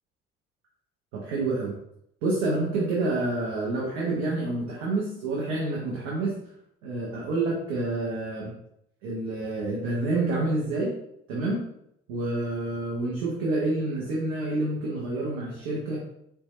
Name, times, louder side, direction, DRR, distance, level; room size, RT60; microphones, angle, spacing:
voice 1, 1.1-1.7 2.2-6.4 6.8-8.5 9.0-10.9 11.3-11.6 12.1-16.0, right 2 dB, 70° right, -4 dB, 0.9 m, -28 dB
4.4 x 2.2 x 3.1 m, 0.76 s
figure-of-eight pair, 50°, 31 cm